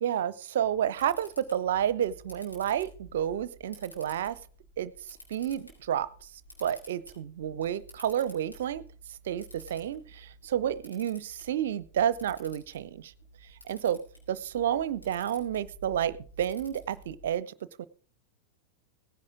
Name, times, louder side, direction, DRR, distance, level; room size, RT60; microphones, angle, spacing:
voice 1, 0.0-4.4 4.8-6.3 6.6-8.8 9.2-13.1 13.6-14.0 14.3-17.9, right 10 dB, 60° right, 19 dB, 0.8 m, -30 dB
Camera, 0.6-17.3, right 1 dB, 85° left, 5.2 m, -52 dB
17.5 x 10.5 x 3.7 m, 0.41 s
figure-of-eight pair, 90°, 0 cm